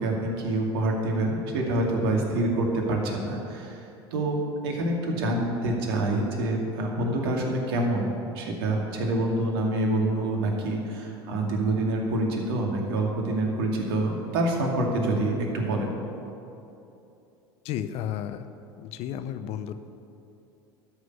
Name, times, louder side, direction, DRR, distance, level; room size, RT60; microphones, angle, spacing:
voice 1, 0.0-3.8 4.1-4.4 4.6-16.0, right 1 dB, 70° right, 0 dB, 2.4 m, -26 dB
voice 2, 17.6-18.5 18.8-19.8, left 10 dB, 50° left, 10 dB, 0.8 m, -32 dB
13.0 x 6.3 x 9.6 m, 2.8 s
hypercardioid pair, 80°, 13 cm